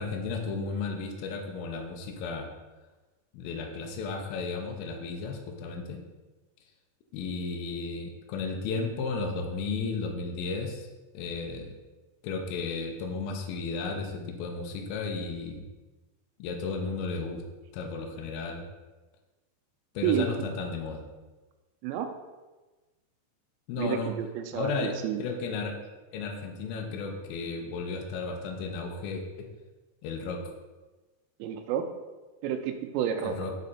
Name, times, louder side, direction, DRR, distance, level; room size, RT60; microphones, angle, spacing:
voice 1, 0.0-2.5 3.3-6.0 7.1-10.9 11.1-11.7 12.2-15.6 16.4-17.4 17.7-18.7 19.9-21.0 23.7-24.1 24.5-25.8 26.1-29.5 30.0-30.5 33.2-33.6, left 4 dB, 85° left, 3 dB, 2.2 m, -34 dB
voice 2, 20.0-20.5 21.8-22.1 23.8-25.2 31.4-31.8 32.4-33.4, right 9 dB, 85° right, 6 dB, 2.8 m, -30 dB
7.5 x 4.2 x 4.1 m, 1.2 s
omnidirectional pair, 5.0 m